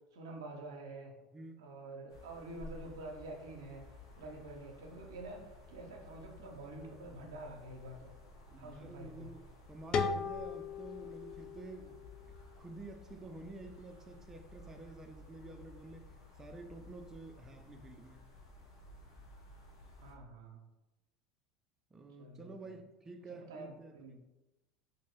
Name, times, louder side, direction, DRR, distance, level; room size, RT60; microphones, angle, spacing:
voice 1, 0.1-1.1 1.6-3.8 4.1-5.4 5.7-8.1 8.6-9.3 20.0-20.6 22.2-22.7 23.5-24.2, right 2 dB, 80° right, 1 dB, 0.6 m, -47 dB
sound 1, 2.1-20.1, left 2 dB, 85° left, 0.7 m, -55 dB
voice 2, 8.5-9.4 9.7-12.0 12.6-16.1 16.4-18.2 21.9-24.2, right 2 dB, 20° right, 5 dB, 0.5 m, -50 dB
sound 2, 9.9-12.8, left 5 dB, 40° left, 0.3 m, -38 dB
2.9 x 2.6 x 3.0 m, 1.0 s
hypercardioid pair, 80°, 2 cm